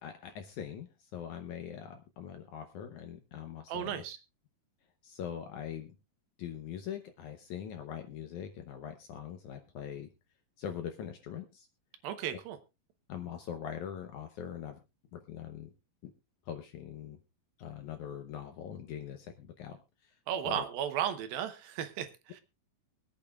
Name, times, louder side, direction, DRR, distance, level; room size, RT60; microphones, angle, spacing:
voice 1, 0.0-4.0 5.0-5.9 6.4-10.1 10.6-11.7 13.1-14.8 15.1-15.7 16.5-17.2 17.6-20.1 20.4-20.6, left 9 dB, 75° left, 6 dB, 1.9 m, -42 dB
voice 2, 3.7-4.2 12.0-12.6 20.3-22.4, right 10 dB, 80° right, 9 dB, 2.7 m, -35 dB
23.5 x 8.7 x 2.3 m, 0.26 s
omnidirectional pair, 4.3 m